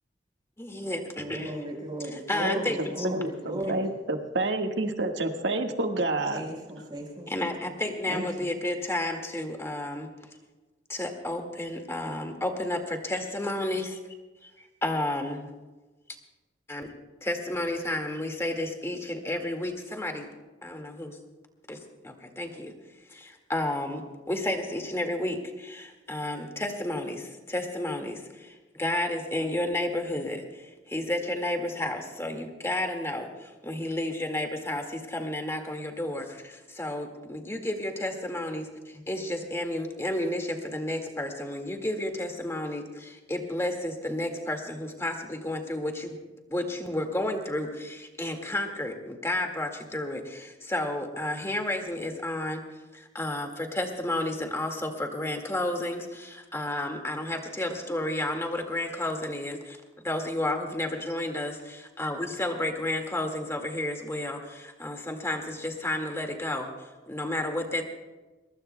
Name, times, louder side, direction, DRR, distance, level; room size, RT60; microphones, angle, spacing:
voice 1, 0.6-1.5 2.1-3.1 7.3-10.1 10.9-14.0 14.4-14.5 14.8-15.5 16.7-16.9 17.2-20.3 20.6-21.2 21.7-21.8 22.0-22.7 23.1-46.2 46.5-52.6 52.9-59.8 60.0-67.8, left 1 dB, 15° left, 3 dB, 2.0 m, -32 dB
voice 2, 1.1-3.9 6.3-7.3 8.1-8.4, right 1 dB, 25° right, 0 dB, 5.1 m, -35 dB
voice 3, 3.0-6.5, right 2 dB, 85° right, 3 dB, 1.7 m, -29 dB
23.0 x 21.0 x 2.3 m, 1.2 s
head